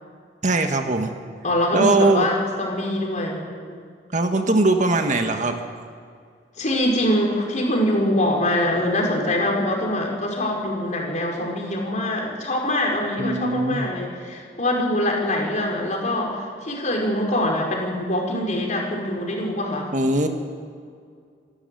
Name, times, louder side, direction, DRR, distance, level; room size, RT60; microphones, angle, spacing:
voice 1, 0.4-1.1 1.7-2.3 4.1-5.6 13.2-13.8 19.9-20.3, right 2 dB, 45° right, 5 dB, 1.6 m, -20 dB
voice 2, 1.4-3.8 6.6-19.9, left 1 dB, 45° left, 0 dB, 5.1 m, -24 dB
26.0 x 12.0 x 9.1 m, 2.2 s
head